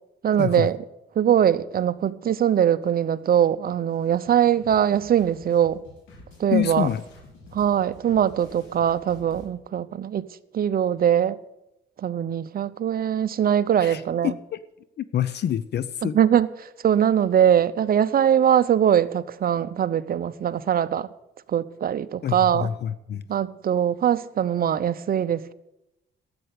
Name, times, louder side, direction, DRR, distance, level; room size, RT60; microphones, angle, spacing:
voice 1, 0.2-0.8 1.2-5.8 6.4-6.9 7.5-10.2 10.5-11.4 12.0-14.3 16.1-16.5 16.8-21.1 21.5-22.7 23.3-25.5, right 9 dB, 50° right, 0.7 m, -21 dB
sound 1, 3.9-9.4, left 2 dB, 90° left, 4.3 m, -48 dB
voice 2, 6.5-7.0 13.8-14.6 15.0-16.2 22.2-23.2, left 10 dB, 55° left, 0.6 m, -27 dB
12.5 x 7.8 x 8.2 m
cardioid pair, 90°, 20 cm